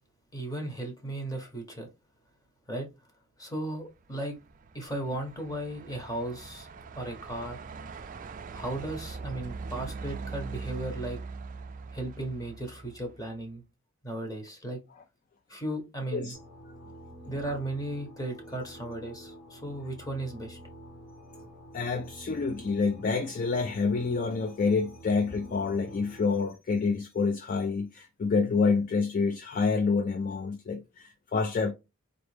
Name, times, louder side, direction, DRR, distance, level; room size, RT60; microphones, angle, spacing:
voice 1, 0.3-1.9 2.7-2.9 3.4-4.4 4.7-6.7 6.9-7.6 8.5-11.2 11.9-13.6 14.0-14.8 15.5-16.3 17.3-20.6, right 1 dB, 15° left, 1.0 m, -36 dB
Truck, 4.0-13.3, right 4 dB, 40° right, 0.3 m, -42 dB
sound 1, 16.3-26.4, equal, 70° left, 1.7 m, -48 dB
voice 2, 21.7-31.7, left 4 dB, 40° left, 0.3 m, -28 dB
4.0 x 3.1 x 3.3 m
head